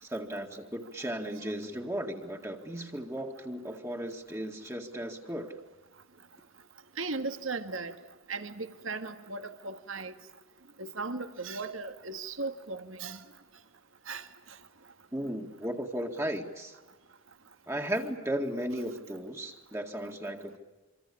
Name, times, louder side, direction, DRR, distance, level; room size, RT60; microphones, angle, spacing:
voice 1, 0.0-5.6 15.1-16.8 17.7-20.6, right 1 dB, 15° right, 2 dB, 2.0 m, -35 dB
voice 2, 7.0-7.9 8.3-10.1 10.8-13.2 14.1-14.6, right 3 dB, 75° right, 9 dB, 1.9 m, -37 dB
26.0 x 25.5 x 8.6 m, 1.2 s
head